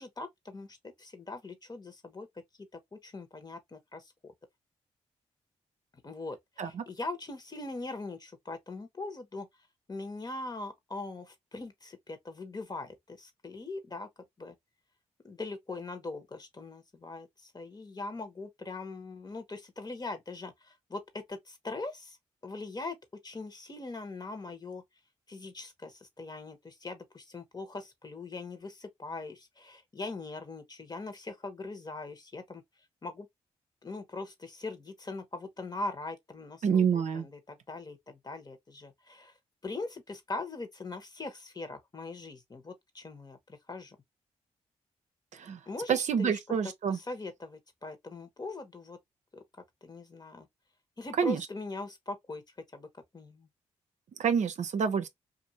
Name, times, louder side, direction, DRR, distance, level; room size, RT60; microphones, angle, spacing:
voice 1, 0.0-2.3 2.6-4.3 6.0-9.5 9.9-14.1 14.4-14.5 15.2-22.2 22.4-23.0 23.2-24.8 25.3-32.6 33.0-33.3 33.8-39.3 39.6-44.0 45.7-49.0 49.3-49.4 49.8-50.5 51.0-52.4 52.7-52.9 53.1-53.5, left 3 dB, 30° left, 1.1 m, -41 dB
voice 2, 36.6-37.2 45.4-45.6 45.9-47.0 51.2-51.4 54.2-55.1, right 7 dB, 65° right, 0.6 m, -27 dB
2.6 x 2.5 x 2.7 m
supercardioid pair, 45°, 13 cm